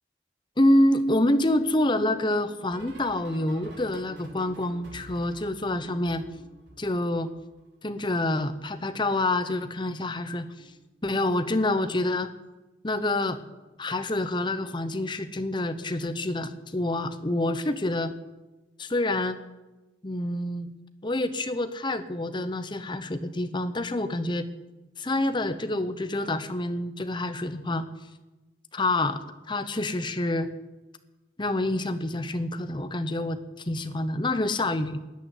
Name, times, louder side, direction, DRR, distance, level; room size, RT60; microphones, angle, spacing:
voice 1, 0.6-6.2 6.8-7.3 7.8-10.5 11.0-12.3 12.8-13.4 13.8-18.1 18.8-19.4 20.0-20.7 21.0-24.5 25.0-27.8 28.7-29.2 29.5-30.5 31.4-35.0, left 1 dB, 25° left, 10 dB, 0.9 m, -27 dB
sound 1, 0.9-7.7 7.9-9.5 10.5-10.9 11.1-11.5 13.0-13.3 13.6-13.9 15.4-15.5, right 1 dB, 80° right, 4.2 m, -50 dB
13.5 x 9.1 x 9.9 m, 1.1 s
head